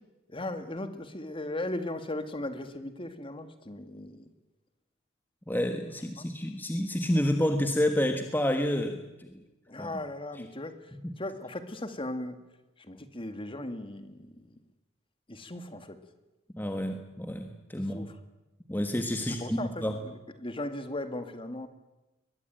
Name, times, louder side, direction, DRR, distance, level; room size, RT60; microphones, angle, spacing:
voice 1, 0.3-4.3 6.2-6.3 9.7-12.4 12.8-14.5 15.3-16.0 17.8-18.2 19.2-21.7, left 1 dB, 25° left, 9 dB, 1.9 m, -38 dB
voice 2, 5.5-9.4 9.8-9.9 11.0-11.1 16.5-18.1 18.7-20.0, left 1 dB, 10° left, 5 dB, 1.5 m, -29 dB
22.5 x 20.5 x 9.1 m, 1.0 s
head